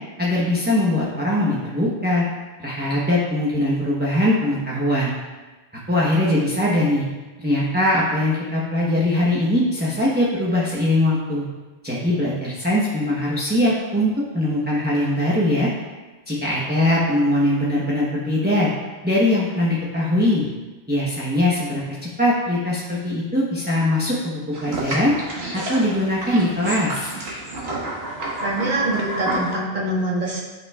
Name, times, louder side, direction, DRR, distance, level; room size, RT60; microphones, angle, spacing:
voice 1, 0.2-2.3 2.6-5.1 5.9-7.1 7.4-11.4 11.8-15.7 16.3-18.7 19.0-20.5 20.9-25.1 25.5-27.1, left 1 dB, 10° right, -7 dB, 1.0 m, -21 dB
sound 1, 24.5-29.5, right 2 dB, 70° right, 1.7 m, -30 dB
voice 2, 28.4-30.4, right 1 dB, 45° right, -4 dB, 1.7 m, -24 dB
12.5 x 5.5 x 2.4 m, 1.3 s
omnidirectional pair, 1.1 m